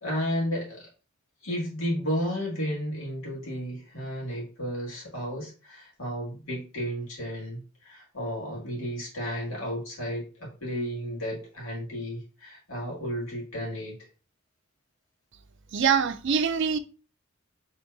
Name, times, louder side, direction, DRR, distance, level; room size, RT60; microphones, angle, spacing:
voice 1, 0.0-0.9 1.4-14.1, equal, 80° left, 2.3 m, -33 dB
voice 2, 15.7-16.8, right 6 dB, 60° right, 0.5 m, -24 dB
4.5 x 3.8 x 2.7 m
head